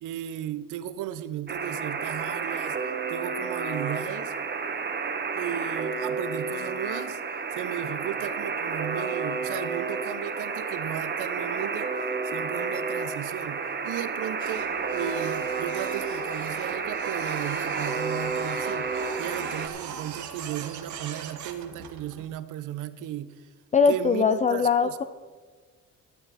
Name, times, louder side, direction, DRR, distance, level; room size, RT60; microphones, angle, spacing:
voice 1, 0.0-2.8 3.1-4.3 5.3-7.2 7.5-12.0 12.2-23.3 23.9-25.0, right 11 dB, 90° right, 0.7 m, -35 dB
Alarm, 1.5-19.7, right 4 dB, 35° right, 1.2 m, -31 dB
Printer, 14.4-22.2, right 7 dB, 70° right, 1.3 m, -39 dB
voice 2, 23.7-25.0, left 5 dB, 25° left, 0.4 m, -21 dB
12.5 x 11.5 x 4.1 m
cardioid pair, 90°, 30 cm